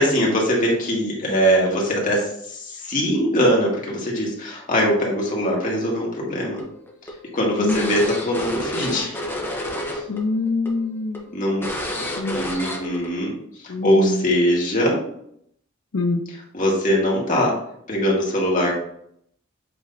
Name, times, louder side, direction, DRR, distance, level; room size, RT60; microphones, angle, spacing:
voice 1, 0.0-6.6 7.3-9.2 9.9-10.0 11.3-11.7 12.3-13.3 13.6-15.0 16.5-17.6 17.9-18.7, equal, 40° left, -3 dB, 2.0 m, -21 dB
sound 1, 6.6-10.2 10.5-10.7 11.1-11.2 11.6-13.1, left 1 dB, 10° left, 1.1 m, -29 dB
voice 2, 7.6-7.9 10.1-11.2 12.0-12.4 13.7-14.2 15.9-16.2, left 3 dB, 90° left, 3 dB, 0.6 m, -25 dB
7.8 x 3.1 x 4.0 m, 0.70 s
head